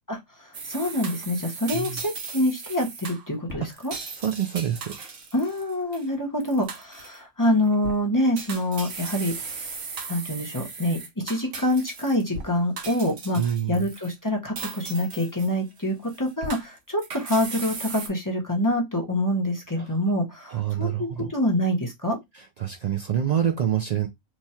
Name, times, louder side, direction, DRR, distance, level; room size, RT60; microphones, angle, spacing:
voice 1, 0.1-3.9 5.3-9.6 10.1-13.4 13.7-22.2, left 1 dB, 20° left, 0.7 m, -26 dB
sound 1, 0.5-6.1 6.4-7.2 7.7-8.0 8.4-12.5 12.8-14.1 14.6-15.8 16.1-18.1, right 4 dB, 70° right, 1.2 m, -37 dB
voice 2, 4.2-4.9 13.3-13.9 19.8-19.9 20.5-21.3 22.3-24.1, right 10 dB, 90° right, 0.3 m, -26 dB
3.1 x 2.3 x 4.1 m
omnidirectional pair, 1.3 m